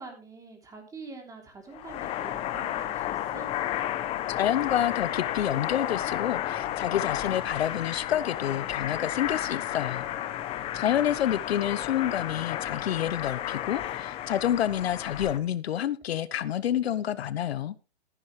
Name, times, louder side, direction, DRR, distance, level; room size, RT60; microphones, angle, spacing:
voice 1, 0.0-3.5, right 4 dB, 10° right, 3.3 m, -45 dB
sound 1, 1.7-15.4, left 12 dB, 20° left, 0.8 m, -32 dB
voice 2, 4.4-10.1 10.7-17.7, left 11 dB, 70° left, 0.9 m, -28 dB
14.5 x 9.9 x 3.3 m
hypercardioid pair, 150°, 32 cm